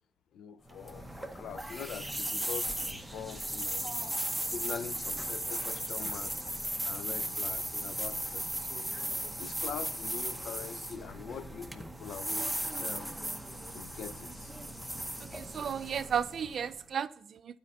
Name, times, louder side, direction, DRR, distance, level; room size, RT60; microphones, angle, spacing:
voice 1, 0.3-4.0 4.4-6.3 6.8-8.9 9.4-13.1 13.7-14.5, left 7 dB, 70° left, 0.4 m, -43 dB
sound 1, 0.7-16.8, right 1 dB, 5° right, 0.7 m, -37 dB
voice 2, 15.2-17.6, right 8 dB, 55° right, 0.3 m, -34 dB
9.4 x 4.3 x 6.4 m
cardioid pair, 90°, 0 cm